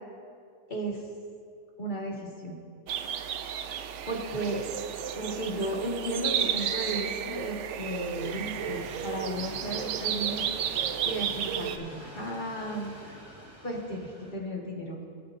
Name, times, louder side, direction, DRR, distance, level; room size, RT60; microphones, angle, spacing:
voice 1, 0.7-1.0 1.8-2.6 4.1-4.6 5.1-13.2 13.6-15.1, right 1 dB, 35° left, -1 dB, 1.7 m, -35 dB
sound 1, 2.9-11.8, right 9 dB, 65° right, 0.8 m, -32 dB
sound 2, 8.2-14.3, right 1 dB, 50° right, 2.4 m, -47 dB
24.0 x 8.5 x 2.6 m, 2.3 s
omnidirectional pair, 1.5 m